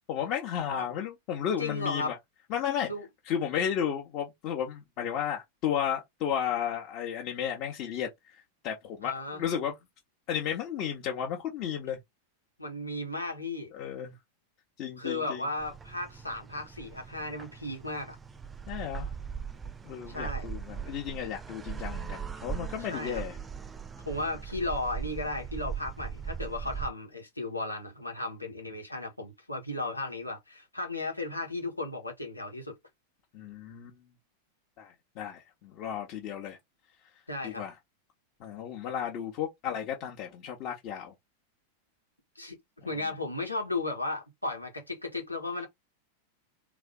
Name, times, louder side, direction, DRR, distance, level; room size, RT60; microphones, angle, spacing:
voice 1, 0.1-2.2 2.5-2.9 3.3-9.7 10.3-12.0 13.7-14.2 14.8-15.4 18.7-19.1 19.8-23.4 33.3-34.0 34.8-36.6 37.4-37.7 38.4-41.1, left 9 dB, 40° left, 1.1 m, -33 dB
voice 2, 1.6-2.1 2.8-3.0 9.0-9.4 12.6-13.7 15.0-18.2 20.1-20.5 22.9-23.2 24.0-32.7 37.3-37.6 42.3-42.6 42.8-45.7, left 2 dB, 85° left, 1.7 m, -35 dB
sound 1, 15.6-26.9, right 7 dB, 15° right, 0.6 m, -40 dB
3.5 x 3.1 x 3.8 m
figure-of-eight pair, 90°, 0 cm